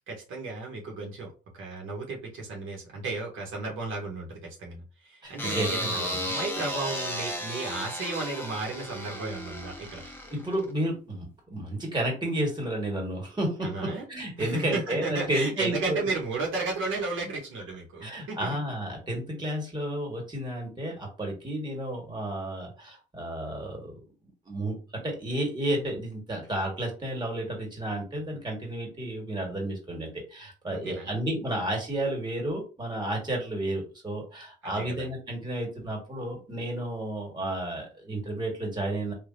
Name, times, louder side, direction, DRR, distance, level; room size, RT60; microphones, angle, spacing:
voice 1, 0.1-10.0 13.6-14.0 14.4-18.5 30.7-31.2 34.6-35.1, right 3 dB, 80° right, -1 dB, 1.1 m, -34 dB
voice 2, 5.2-6.1 10.3-16.0 18.0-23.9 24.5-24.8 25.0-39.1, right 1 dB, 20° right, 0 dB, 1.6 m, -32 dB
sound 1, 5.4-10.7, left 1 dB, 10° left, 0.9 m, -34 dB
3.3 x 2.5 x 2.6 m, 0.35 s
cardioid pair, 90°, 20 cm